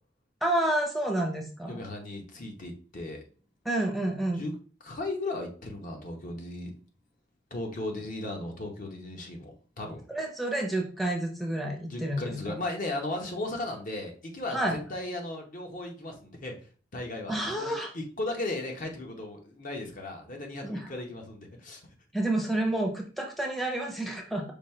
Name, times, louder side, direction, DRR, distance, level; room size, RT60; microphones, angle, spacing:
voice 1, 0.4-1.8 3.6-4.4 10.1-12.5 14.5-14.8 17.3-17.9 20.6-20.9 22.1-24.4, right 1 dB, ahead, 1 dB, 0.7 m, -29 dB
voice 2, 1.7-3.2 4.4-4.5 4.8-6.7 7.5-10.0 11.9-16.6 16.9-21.8, left 2 dB, 45° left, 2 dB, 0.9 m, -36 dB
5.1 x 2.3 x 4.4 m, 0.40 s
head